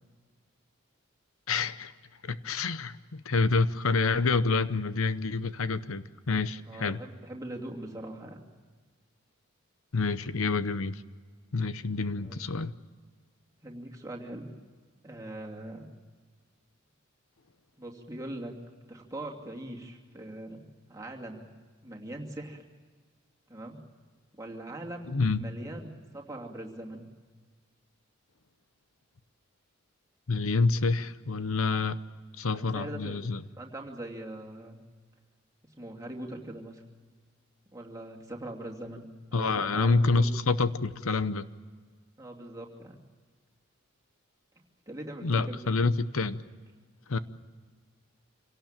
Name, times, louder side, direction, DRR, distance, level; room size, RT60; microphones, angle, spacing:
voice 1, 1.5-1.9 2.3-7.0 9.9-11.0 11.5-12.7 25.1-25.5 30.3-32.0 32.4-33.4 39.3-41.5 45.2-46.4 47.1-47.2, left 4 dB, 75° left, 0.8 m, -27 dB
voice 2, 6.7-8.4 12.2-12.4 13.6-14.5 15.0-15.9 17.8-18.5 18.9-20.6 20.9-21.5 21.8-22.6 23.5-23.8 24.3-27.1 32.5-33.2 33.5-34.8 35.6-36.8 37.7-40.4 42.2-43.0 44.9-45.6, right 1 dB, 15° right, 2.6 m, -41 dB
27.0 x 18.0 x 8.9 m
head